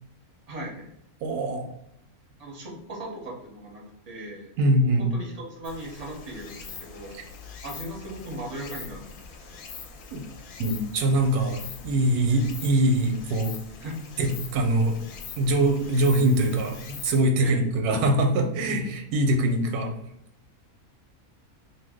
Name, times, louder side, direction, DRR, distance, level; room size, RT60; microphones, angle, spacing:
voice 1, 0.5-0.9 2.4-4.5 5.0-7.2 7.6-9.3 13.8-14.0 17.4-17.6, right 1 dB, 40° right, -2 dB, 0.6 m, -38 dB
voice 2, 1.2-1.7 4.6-5.1 7.1-7.2 10.1-10.2 10.6-13.5 14.2-15.0 15.4-20.0, right 1 dB, 85° right, 4 dB, 1.1 m, -23 dB
Stream, 5.6-17.2, left 5 dB, 75° left, 1.0 m, -43 dB
2.6 x 2.2 x 3.4 m, 0.75 s
omnidirectional pair, 1.6 m